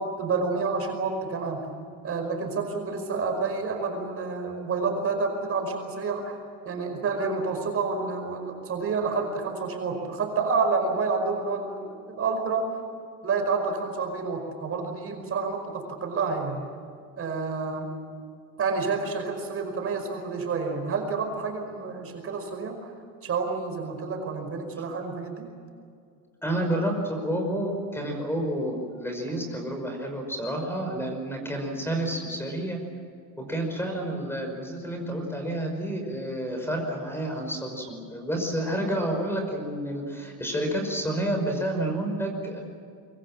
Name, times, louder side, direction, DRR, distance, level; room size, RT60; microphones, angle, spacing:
voice 1, 0.0-1.7 2.0-6.4 6.6-12.7 13.2-16.6 17.2-17.9 18.6-22.9 23.2-25.5, right 4 dB, 40° right, 4 dB, 5.2 m, -29 dB
voice 2, 26.4-32.8 33.5-42.6, right 1 dB, 5° left, 3 dB, 5.5 m, -29 dB
24.5 x 24.0 x 7.5 m, 2.3 s
cardioid pair, 150°, 33 cm